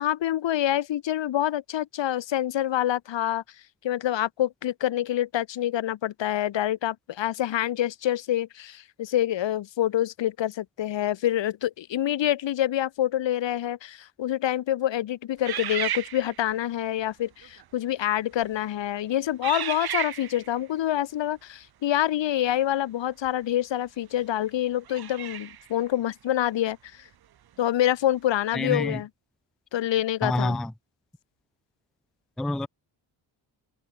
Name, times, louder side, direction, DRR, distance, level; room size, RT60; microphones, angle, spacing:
voice 1, 0.0-3.4 3.8-26.8 27.6-29.1 29.7-30.6, left 12 dB, 70° left, 2.0 m, -26 dB
sound 1, 15.4-16.6 17.4-17.6 18.3-18.7 19.4-20.5 23.2-23.3 24.8-25.7, right 11 dB, 55° right, 1.1 m, -33 dB
voice 2, 28.5-29.0 30.2-30.7 32.4-32.7, left 1 dB, ahead, 0.4 m, -27 dB
cardioid pair, 110°, 46 cm